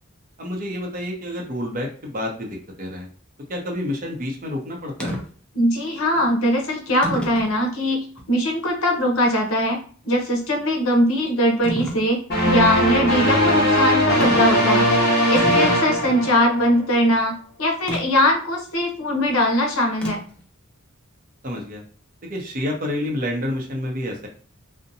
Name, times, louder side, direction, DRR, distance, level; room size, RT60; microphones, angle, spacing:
voice 1, 0.4-3.1 3.5-5.2 15.4-15.6 21.4-21.8 22.2-24.3, left 1 dB, 40° right, 0 dB, 0.7 m, -29 dB
sound 1, 5.0-5.2 6.1-6.3 7.0-7.5 8.2-8.3 11.6-12.0 14.2-14.6 14.9-15.0 15.2-16.3 17.9-18.0 20.0-20.4, equal, 5° left, 0.4 m, -30 dB
voice 2, 5.5-9.8 10.0-14.9 15.3-20.2, equal, 75° left, 2 dB, 0.8 m, -21 dB
sound 2, 12.3-16.8, equal, 45° left, 0.9 m, -19 dB
2.7 x 2.1 x 2.6 m, 0.43 s
head